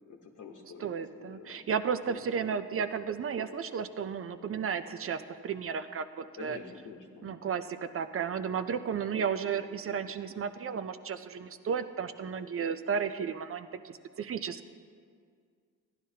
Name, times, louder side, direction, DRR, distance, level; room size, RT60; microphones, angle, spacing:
voice 1, 0.1-0.9 1.2-1.6 2.1-2.2 6.4-7.4, left 5 dB, 55° left, 0 dB, 1.0 m, -47 dB
voice 2, 0.8-6.6 7.2-14.7, right 6 dB, 40° right, 10 dB, 0.5 m, -33 dB
15.0 x 10.5 x 2.8 m, 2.1 s
cardioid pair, 105°, 36 cm